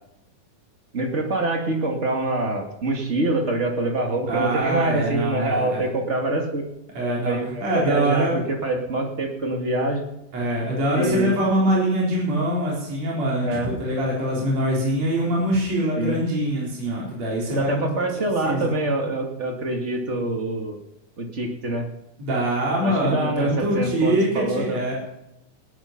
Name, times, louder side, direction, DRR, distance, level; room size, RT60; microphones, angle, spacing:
voice 1, 0.9-6.7 7.2-10.0 10.9-11.3 13.4-13.7 16.0-16.2 17.5-20.8 21.2-21.9 22.8-24.8, right 2 dB, 25° right, 3 dB, 1.6 m, -25 dB
voice 2, 4.3-5.9 6.9-8.4 10.3-17.9 18.4-18.7 22.2-24.9, right 1 dB, 55° right, -4 dB, 5.1 m, -23 dB
18.0 x 11.0 x 5.8 m, 0.86 s
omnidirectional pair, 3.7 m